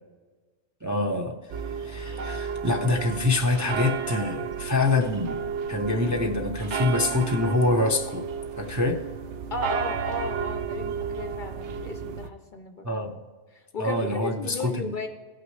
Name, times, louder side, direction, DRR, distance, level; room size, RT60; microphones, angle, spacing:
voice 1, 0.8-1.4 1.8-5.4 5.7-8.2 8.6-9.0 12.8-13.1 13.8-14.9, left 2 dB, 20° right, 1 dB, 0.5 m, -25 dB
sound 1, 1.5-12.3, right 6 dB, 70° right, 0.9 m, -32 dB
voice 2, 9.5-13.2 13.5-15.1, left 2 dB, 50° left, 6 dB, 0.6 m, -35 dB
16.5 x 5.9 x 3.2 m, 1.4 s
omnidirectional pair, 1.3 m